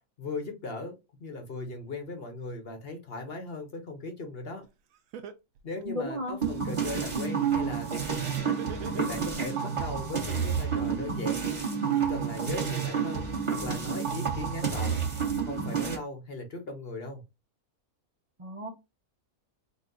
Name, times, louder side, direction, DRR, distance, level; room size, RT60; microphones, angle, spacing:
voice 1, 0.2-0.9 1.2-4.6 5.6-8.6 8.9-11.4 11.9-15.0 15.4-17.2, left 2 dB, 45° left, 4 dB, 1.0 m, -38 dB
Laughter, 4.6-4.7 5.1-6.6 8.4-9.6, right 8 dB, 70° right, 1.0 m, -41 dB
voice 2, 5.9-6.4 18.4-18.7, left 1 dB, 45° right, 2 dB, 0.4 m, -34 dB
sound 1, 6.4-16.0, right 7 dB, 20° right, 1.1 m, -30 dB
4.1 x 2.3 x 3.8 m, 0.25 s
omnidirectional pair, 1.5 m